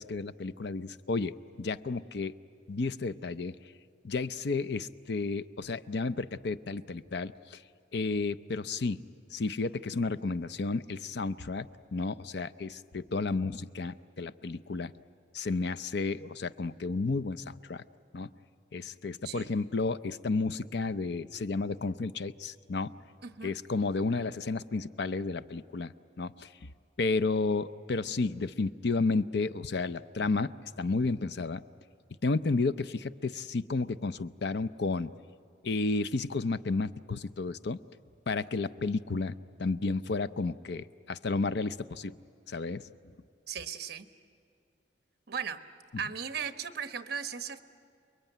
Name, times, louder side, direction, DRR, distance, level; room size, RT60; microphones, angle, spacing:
voice 1, 0.0-2.3 2.7-3.5 4.0-7.6 7.9-9.0 9.3-14.9 15.3-17.8 18.1-18.3 18.7-22.9 23.4-25.9 26.2-26.5 27.0-31.6 32.2-35.1 35.6-37.8 38.3-42.1 42.5-42.9, left 3 dB, 60° left, 13 dB, 0.6 m, -32 dB
voice 2, 23.2-23.5 43.5-44.1 45.3-45.6 46.0-47.6, right 7 dB, 55° right, 10 dB, 1.1 m, -37 dB
29.5 x 22.0 x 9.2 m, 2.4 s
head